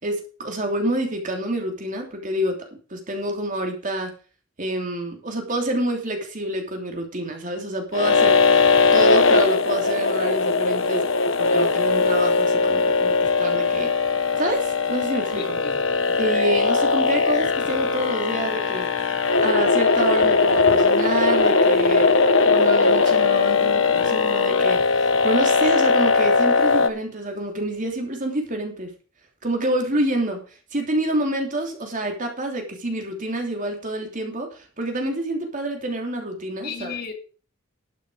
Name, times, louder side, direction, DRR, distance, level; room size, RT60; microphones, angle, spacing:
voice 1, 0.0-4.1 4.6-8.4 8.9-11.0 11.4-13.9 14.4-15.6 16.2-18.9 19.4-22.1 22.4-28.9 29.4-30.4 30.7-36.9, right 1 dB, 40° right, 3.1 m, -27 dB
sound 1, 7.9-26.9, left 4 dB, 70° left, 1.1 m, -19 dB
voice 2, 15.4-15.8 36.6-37.1, left 6 dB, 50° left, 2.3 m, -34 dB
12.0 x 8.4 x 5.0 m
head